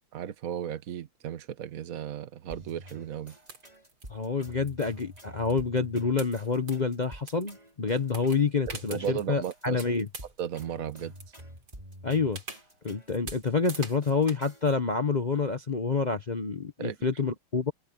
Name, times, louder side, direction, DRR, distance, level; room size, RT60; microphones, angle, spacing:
voice 1, 0.1-3.4 8.7-9.8 10.4-11.1 16.8-17.0, right 9 dB, 50° right, 1.3 m, -35 dB
sound 1, 2.5-14.7, equal, 15° right, 5.1 m, -48 dB
sound 2, 3.5-4.1 4.4-5.9 6.2-7.7 8.0-10.9 11.2-11.7 12.3-14.4, right 4 dB, 70° right, 5.2 m, -44 dB
voice 2, 4.1-10.1 12.0-12.4 12.8-17.7, left 4 dB, 60° left, 0.4 m, -28 dB
omnidirectional pair, 2.3 m